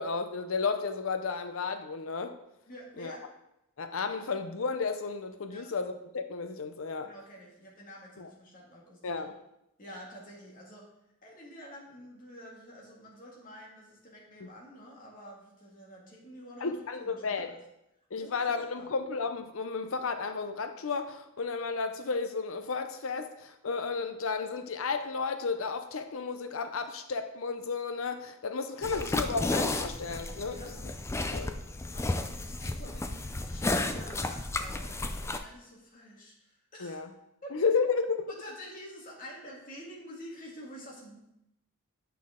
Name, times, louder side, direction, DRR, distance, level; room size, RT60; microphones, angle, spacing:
voice 1, 0.0-2.4 3.0-3.2 3.8-7.1 8.2-8.3 9.0-9.3 14.4-14.5 16.6-17.5 18.1-30.6 31.3-31.5 36.8-37.1 37.5-38.1, left 4 dB, 65° left, 8 dB, 0.6 m, -33 dB
voice 2, 2.7-3.2 5.5-5.7 7.0-9.2 9.8-10.9 11.2-17.6 18.2-18.9 30.5-30.8 31.9-37.0 37.4-37.9 38.3-41.2, equal, 40° left, -3 dB, 2.0 m, -48 dB
sound 1, 28.8-35.4, left 2 dB, 10° left, 0.3 m, -33 dB
8.6 x 5.8 x 3.7 m, 0.84 s
head